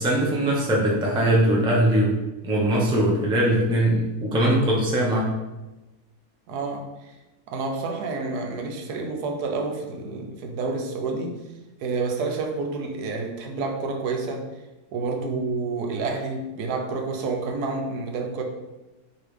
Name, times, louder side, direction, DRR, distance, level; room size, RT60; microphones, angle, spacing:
voice 1, 0.0-2.2 2.4-5.4, right 1 dB, 5° right, -3 dB, 0.3 m, -21 dB
voice 2, 6.5-7.2 7.5-11.4 11.8-14.5 14.9-18.4, right 3 dB, 90° right, 3 dB, 1.3 m, -29 dB
5.0 x 3.2 x 3.2 m, 1.0 s
omnidirectional pair, 1.6 m